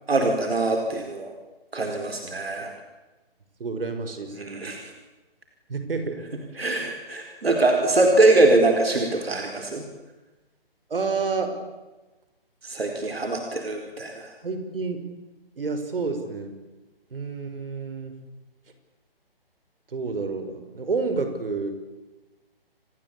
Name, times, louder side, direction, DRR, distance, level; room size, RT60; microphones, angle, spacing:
voice 1, 0.1-1.3 1.7-2.7 4.4-4.9 6.6-9.9 12.6-14.3, right 2 dB, 85° right, 3 dB, 4.7 m, -23 dB
voice 2, 3.6-4.4 5.7-6.2 10.9-11.5 14.4-15.0 15.6-16.5 17.1-18.1 19.9-21.7, right 4 dB, 70° right, 8 dB, 5.8 m, -29 dB
28.5 x 21.0 x 8.8 m, 1.1 s
figure-of-eight pair, 150°, 30 cm